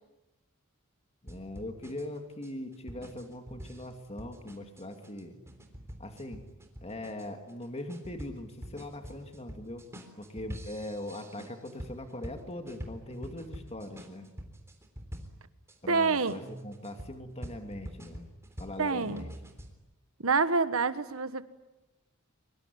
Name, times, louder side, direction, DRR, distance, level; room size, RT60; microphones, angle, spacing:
voice 1, 1.2-5.3 6.0-6.4 6.8-9.9 10.2-14.3 15.8-18.3 18.6-19.3, left 1 dB, 30° left, 5 dB, 2.6 m, -41 dB
sound 1, 1.3-15.8 16.3-19.7, equal, 15° right, 3.6 m, -46 dB
voice 2, 15.9-16.4 18.8-19.2 20.2-21.5, right 4 dB, 75° right, 12 dB, 1.5 m, -27 dB
24.5 x 23.5 x 9.5 m, 1.0 s
head